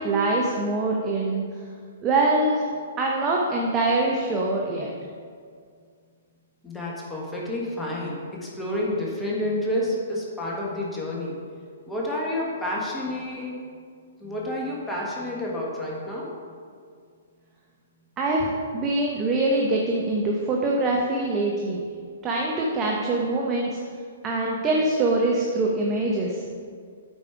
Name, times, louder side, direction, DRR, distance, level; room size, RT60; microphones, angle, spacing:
voice 1, 0.0-1.4 2.0-2.7 3.0-4.9 18.2-21.8 22.2-23.8 24.2-26.4, right 2 dB, 25° right, -2 dB, 0.9 m, -24 dB
voice 2, 6.6-11.4 11.9-13.6 14.2-16.5, left 1 dB, 10° left, -4 dB, 1.5 m, -29 dB
8.4 x 5.4 x 4.6 m, 2.1 s
figure-of-eight pair, 120°, 0 cm